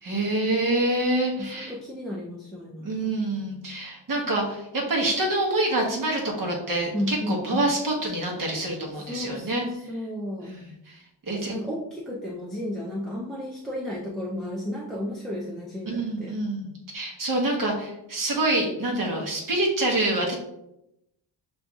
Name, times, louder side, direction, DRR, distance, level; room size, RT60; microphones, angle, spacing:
voice 1, 0.0-1.7 2.8-9.7 10.4-11.0 11.3-11.5 15.9-20.3, right 2 dB, 45° right, -1 dB, 1.1 m, -26 dB
voice 2, 1.4-2.9 6.9-7.7 8.9-10.5 11.3-16.3, left 1 dB, ahead, -5 dB, 0.4 m, -33 dB
6.6 x 2.6 x 2.3 m, 0.84 s
wide cardioid pair, 155°, 47 cm